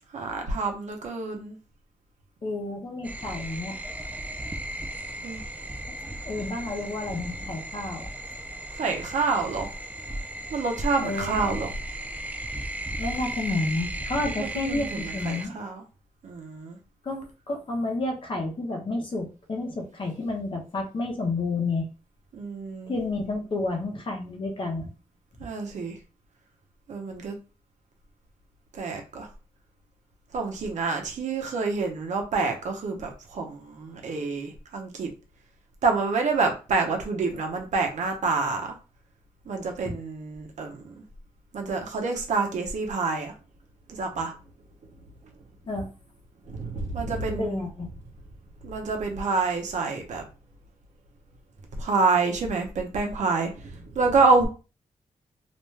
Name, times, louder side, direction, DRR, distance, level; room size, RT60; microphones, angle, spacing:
voice 1, 0.1-1.6 5.2-5.4 8.7-9.7 10.5-11.7 14.4-15.8 16.2-16.8 22.3-22.9 25.4-26.0 26.9-27.4 28.7-29.3 30.3-35.1 35.8-38.7 39.5-40.9 41.5-43.3 43.9-44.3 46.5-47.6 48.6-50.2 51.8-54.5, right 4 dB, 70° right, 3 dB, 0.8 m, -27 dB
voice 2, 2.4-3.8 5.9-6.0 6.2-8.1 11.0-11.5 13.0-15.5 17.0-21.9 22.9-24.9 45.7-45.9 47.3-47.9, left 2 dB, 45° left, 2 dB, 0.8 m, -30 dB
sound 1, 3.0-15.4, right 1 dB, 10° right, 0.3 m, -36 dB
2.5 x 2.2 x 3.2 m, 0.34 s
wide cardioid pair, 110°, 13 cm